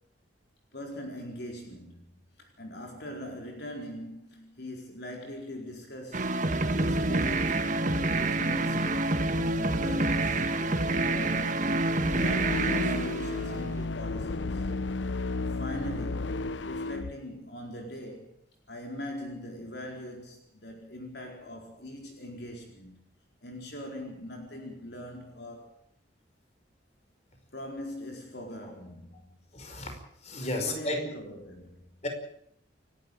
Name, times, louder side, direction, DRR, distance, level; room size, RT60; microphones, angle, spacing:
voice 1, 0.7-6.3 6.6-7.6 8.0-11.7 12.2-14.7 15.5-18.4 18.7-23.0 23.4-25.8 27.5-29.4 30.4-32.0, equal, 60° left, 1 dB, 4.4 m, -42 dB
sound 1, 6.1-13.9, right 2 dB, 45° right, 1.6 m, -27 dB
sound 2, 11.9-17.1, left 3 dB, 80° left, 0.8 m, -33 dB
voice 2, 29.5-31.0 32.0-32.1, left 1 dB, 35° left, 5 dB, 5.3 m, -33 dB
29.0 x 12.0 x 9.0 m, 0.69 s
head